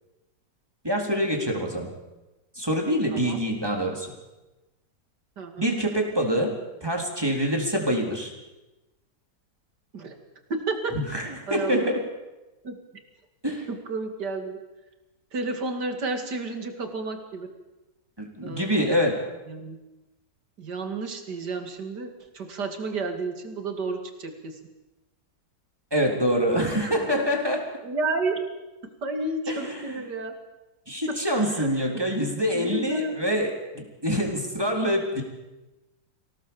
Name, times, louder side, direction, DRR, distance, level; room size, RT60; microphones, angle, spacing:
voice 1, 0.8-1.9 2.6-4.1 5.6-6.5 6.8-8.3 11.1-11.2 11.5-12.0 13.4-13.7 18.2-19.2 25.9-27.6 29.5-29.8 30.9-35.2, equal, 15° right, 1 dB, 3.6 m, -25 dB
voice 2, 3.1-3.4 5.4-5.7 9.9-10.2 10.5-11.9 12.6-12.8 13.7-14.6 15.3-17.5 18.4-19.0 19.5-19.8 20.6-24.6 27.0-27.1 27.8-28.4 29.0-30.3 31.1-32.0 32.5-33.1, right 3 dB, 75° right, 5 dB, 3.0 m, -32 dB
25.5 x 17.5 x 7.1 m, 1.0 s
omnidirectional pair, 1.8 m